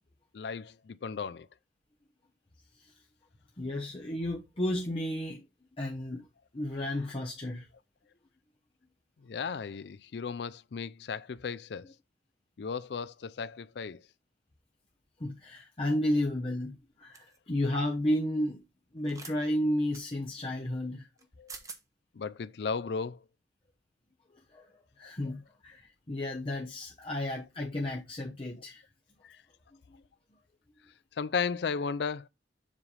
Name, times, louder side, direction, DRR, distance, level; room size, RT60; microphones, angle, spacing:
voice 1, 0.3-1.5 9.2-11.9 12.6-14.0 21.4-21.5 22.2-23.2 27.2-27.3 29.2-29.4 31.2-32.3, left 5 dB, 65° left, 0.4 m, -35 dB
voice 2, 3.6-5.4 5.8-6.2 6.5-7.7 15.2-18.6 18.9-21.1 24.5-24.6 25.0-28.8, left 1 dB, 30° left, 0.9 m, -32 dB
sound 1, 17.1-17.4 19.0-19.4 19.9-20.0 21.2-21.3 21.5-21.8, right 5 dB, 20° right, 1.0 m, -45 dB
7.4 x 3.3 x 5.4 m
head